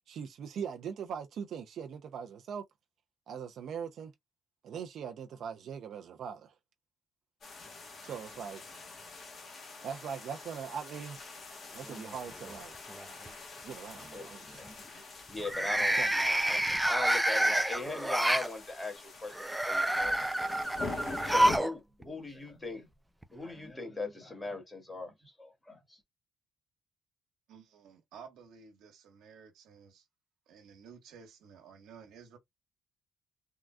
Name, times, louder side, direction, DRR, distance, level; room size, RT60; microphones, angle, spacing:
voice 1, 0.1-2.6 3.3-4.1 4.6-6.5 8.0-8.8 9.8-11.3 11.5-12.7 13.6-14.6 16.0-16.1, right 7 dB, 70° right, 0.5 m, -41 dB
sound 1, 7.4-21.6, left 3 dB, 50° left, 1.5 m, -45 dB
sound 2, 11.9-12.5 12.9-13.3 15.4-18.5 19.3-21.7 22.0-22.1 23.2-23.3, right 1 dB, 5° right, 0.4 m, -28 dB
voice 2, 14.1-20.5 21.2-22.9 23.3-26.0, left 2 dB, 20° left, 1.6 m, -40 dB
voice 3, 27.5-30.1 30.5-32.4, right 6 dB, 85° right, 1.3 m, -53 dB
3.7 x 2.3 x 2.3 m
cardioid pair, 90°, 0 cm